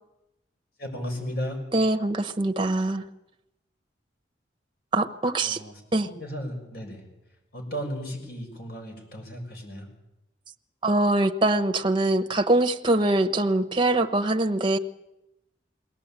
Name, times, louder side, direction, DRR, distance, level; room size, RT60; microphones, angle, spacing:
voice 1, 0.8-1.6 5.4-5.7 6.2-7.0 7.5-9.9, equal, 55° left, 3 dB, 6.5 m, -34 dB
voice 2, 1.7-3.0 4.9-5.6 5.9-6.1 10.8-14.8, right 2 dB, 25° right, 8 dB, 1.0 m, -23 dB
22.0 x 17.5 x 8.9 m, 0.91 s
head